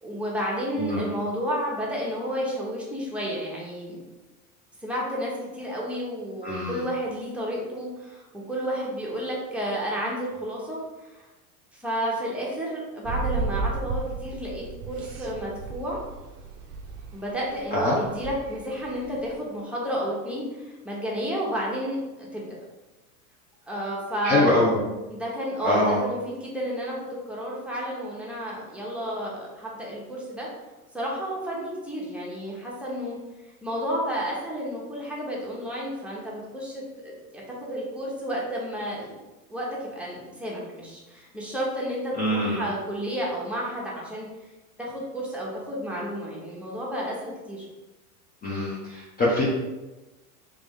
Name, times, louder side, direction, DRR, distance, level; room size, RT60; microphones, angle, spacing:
voice 1, 0.0-4.0 4.8-10.8 11.8-16.0 17.1-22.5 23.7-24.6 25.1-30.5 30.9-33.2 33.6-39.2 39.5-44.3 44.8-47.7, equal, 5° right, -5 dB, 1.0 m, -31 dB
voice 2, 6.4-6.8 17.7-18.0 24.2-24.7 25.6-26.0 42.2-42.7 48.4-49.4, left 1 dB, 20° left, -5 dB, 0.7 m, -24 dB
sound 1, 13.1-19.4, right 4 dB, 35° right, 0.6 m, -34 dB
3.2 x 3.2 x 3.6 m, 1.1 s
hypercardioid pair, 110°, 45 cm